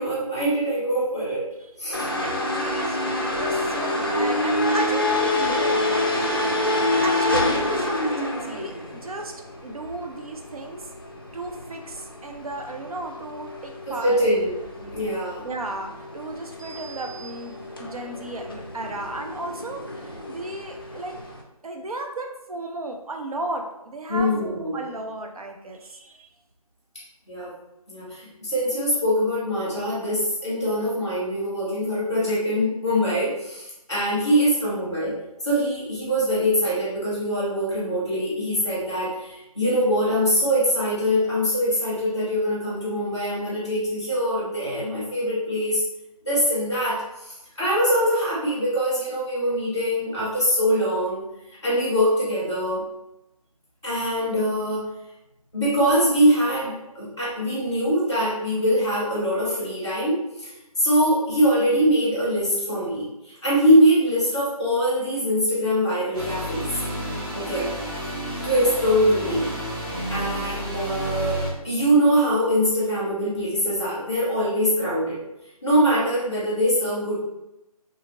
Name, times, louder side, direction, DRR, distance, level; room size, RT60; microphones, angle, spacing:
voice 1, 0.0-1.5 1.8-2.0 13.9-14.6 14.9-15.4 24.1-24.8 27.3-27.5 27.9-35.1 35.4-45.8 46.2-51.2 51.6-52.8 53.8-54.9 55.5-60.5 60.8-66.7 67.3-67.7 68.4-69.5 70.1-75.2 75.6-77.2, equal, 10° right, -8 dB, 0.7 m, -23 dB
sound 1, 1.9-21.4, left 1 dB, 40° left, 0.4 m, -28 dB
voice 2, 2.2-6.7 7.0-9.3 9.6-10.9 11.3-14.2 14.8-15.0 15.4-21.2 21.6-26.3, right 2 dB, 70° right, 3 dB, 0.6 m, -35 dB
sound 2, 66.1-71.5, equal, 35° right, 1.4 m, -31 dB
2.7 x 2.6 x 2.9 m, 0.92 s
figure-of-eight pair, 175°, 19 cm